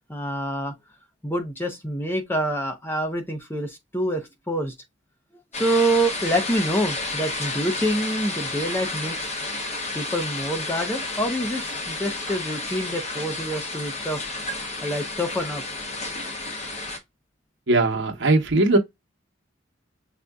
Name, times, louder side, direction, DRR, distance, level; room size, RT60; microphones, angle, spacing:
voice 1, 0.1-0.7 1.2-4.7 5.5-9.3 9.9-15.6, right 1 dB, 10° left, 0.6 m, -27 dB
sound 1, 5.5-17.0, left 2 dB, 35° left, 0.9 m, -31 dB
voice 2, 17.7-18.8, right 2 dB, 70° right, 1.0 m, -19 dB
6.4 x 2.6 x 2.3 m
head